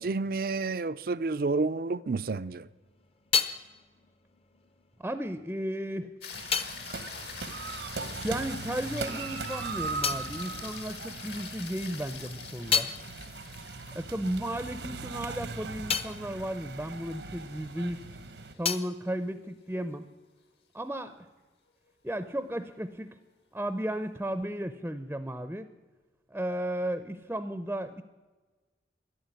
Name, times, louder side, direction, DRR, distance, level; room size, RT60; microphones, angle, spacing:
voice 1, 0.0-2.7, right 3 dB, 55° right, 0.5 m, -30 dB
sound 1, 2.5-8.5 8.8-11.5 11.9-17.9 18.1-20.2, left 6 dB, 35° left, 0.7 m, -36 dB
voice 2, 5.0-6.1 8.2-12.9 13.9-18.0 18.6-20.1 20.7-21.2 22.0-23.2 23.5-25.7 26.3-28.0, right 1 dB, 10° right, 0.6 m, -34 dB
sound 2, 6.2-18.6 23.1-23.2, left 6 dB, 70° left, 2.1 m, -45 dB
sound 3, 6.3-18.5, right 4 dB, 80° right, 1.1 m, -39 dB
13.0 x 11.0 x 9.7 m
head